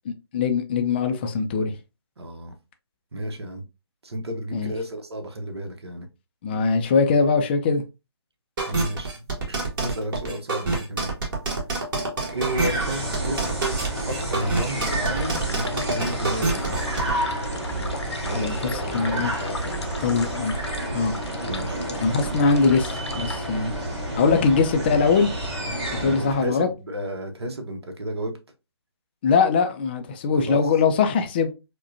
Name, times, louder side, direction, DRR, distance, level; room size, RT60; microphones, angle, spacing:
voice 1, 0.1-1.7 4.5-4.7 6.4-7.8 18.3-19.3 20.0-20.6 20.9-21.1 22.0-23.7 24.2-25.3 26.0-26.7 29.2-31.5, left 5 dB, 25° left, 0.4 m, -22 dB
voice 2, 2.2-2.6 3.1-3.6 4.0-6.1 8.7-11.1 12.3-13.4 14.1-16.8 18.2-19.8 21.4-21.8 22.2-22.5 24.3-24.5 26.0-28.3 30.3-30.6, right 1 dB, 65° right, 0.9 m, -32 dB
sound 1, 8.6-17.1, right 3 dB, 50° right, 1.4 m, -27 dB
sound 2, 12.3-26.5, right 1 dB, 25° right, 2.1 m, -30 dB
sound 3, 14.2-23.5, left 3 dB, 80° left, 0.7 m, -38 dB
4.7 x 2.2 x 2.6 m
figure-of-eight pair, 140°, 14 cm